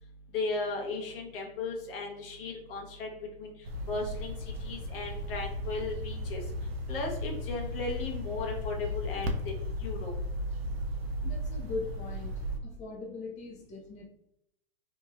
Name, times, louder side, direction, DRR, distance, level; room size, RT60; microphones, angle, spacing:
voice 1, 0.3-3.1 3.4-3.5 3.9-4.3 4.6-6.4 6.9-9.5 9.8-10.1, left 3 dB, 65° left, 0 dB, 1.0 m, -36 dB
sound 1, 3.6-12.6, left 1 dB, 80° right, 0.6 m, -35 dB
voice 2, 11.2-14.1, left 4 dB, 25° left, -3 dB, 0.8 m, -40 dB
2.9 x 2.9 x 2.4 m, 0.78 s
hypercardioid pair, 125°, 30 cm